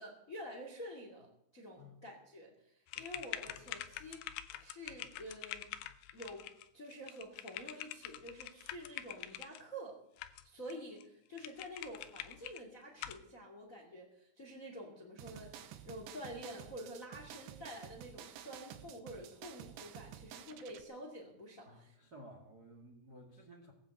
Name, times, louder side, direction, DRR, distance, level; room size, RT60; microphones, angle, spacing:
voice 1, 0.0-4.2 4.6-5.7 6.1-6.4 6.7-10.0 10.4-21.9, equal, 35° left, 2 dB, 1.3 m, -49 dB
sound 1, 2.9-9.6 10.2-10.7 11.0-11.1 11.4-12.6 13.0-13.2, left 13 dB, 80° left, 2.5 m, -46 dB
sound 2, 15.2-20.8, right 10 dB, 75° right, 3.1 m, -51 dB
voice 2, 21.6-23.7, equal, 45° right, 1 dB, 1.2 m, -55 dB
18.0 x 10.0 x 7.8 m, 0.76 s
omnidirectional pair, 5.5 m